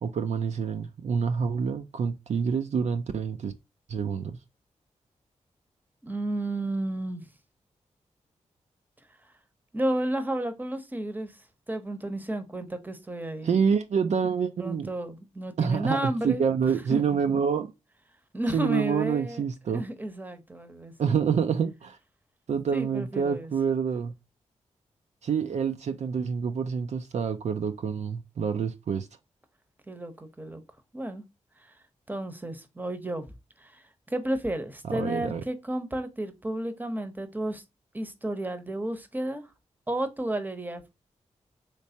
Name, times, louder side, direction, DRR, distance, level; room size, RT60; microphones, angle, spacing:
voice 1, 0.0-3.5 3.9-4.4 13.4-14.9 15.6-17.7 18.5-19.8 21.0-22.0 22.5-24.1 25.2-29.1 34.9-35.4, right 6 dB, 65° right, 0.4 m, -27 dB
voice 2, 6.0-7.3 9.7-11.4 11.7-13.6 14.6-16.4 16.9-17.1 18.3-19.4 19.7-21.2 22.7-23.5 29.9-30.6 30.9-31.2 31.6-31.7 32.1-33.3 33.6-37.6 37.9-39.5 39.9-40.9, right 1 dB, 15° right, 0.8 m, -32 dB
3.2 x 3.2 x 2.7 m
cardioid pair, 50°, 13 cm